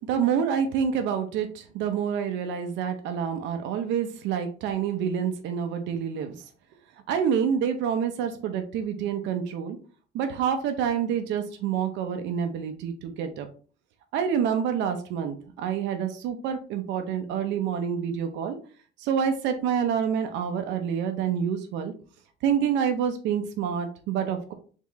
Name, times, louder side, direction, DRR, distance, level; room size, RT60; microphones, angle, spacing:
voice 1, 0.1-6.4 7.1-9.8 10.1-13.5 14.1-18.6 19.0-21.9 22.4-24.5, right 7 dB, 85° right, 7 dB, 0.7 m, -27 dB
3.7 x 3.7 x 3.1 m, 0.40 s
cardioid pair, 115°, 18 cm